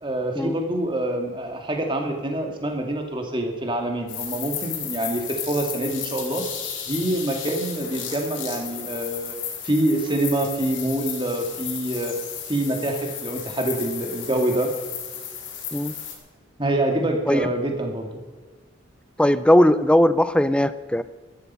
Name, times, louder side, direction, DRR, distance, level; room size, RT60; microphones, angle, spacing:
voice 1, 0.0-6.4 6.9-9.4 9.6-12.2 12.5-14.7 16.6-18.1, right 1 dB, 25° right, 3 dB, 2.0 m, -26 dB
sound 1, 4.1-16.1, left 8 dB, 70° left, 3.3 m, -34 dB
voice 2, 19.2-21.0, left 1 dB, 5° left, 14 dB, 0.4 m, -18 dB
14.0 x 12.5 x 5.6 m, 1.4 s
head